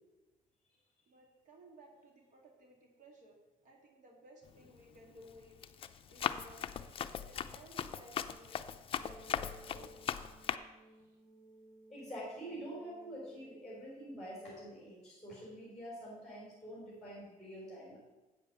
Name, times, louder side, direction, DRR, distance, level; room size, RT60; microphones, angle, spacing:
voice 1, 1.1-3.4 3.6-5.6 6.1-6.6 7.2-8.7 9.1-10.1 10.9-11.2, right 1 dB, 60° right, 1 dB, 2.1 m, -58 dB
Run, 4.5-4.8 5.3-10.6, left 8 dB, 40° left, 0.5 m, -39 dB
sound 1, 8.9-14.8, right 2 dB, 35° right, 4.0 m, -59 dB
voice 2, 11.9-18.0, equal, ahead, -5 dB, 3.9 m, -46 dB
8.2 x 7.3 x 6.7 m, 1.1 s
cardioid pair, 130°, 15 cm